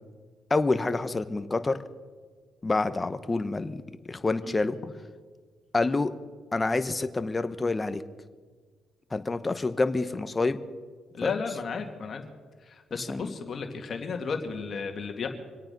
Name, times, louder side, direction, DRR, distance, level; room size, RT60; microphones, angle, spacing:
voice 1, 0.5-1.8 2.6-4.8 5.7-6.1 6.5-8.0 9.1-10.6 11.2-11.3 12.9-13.3, left 3 dB, 20° left, 11 dB, 1.0 m, -27 dB
voice 2, 11.1-12.2 12.7-15.3, left 5 dB, 50° left, 5 dB, 2.2 m, -33 dB
26.0 x 8.9 x 5.3 m, 1.5 s
cardioid pair, 90°, 0 cm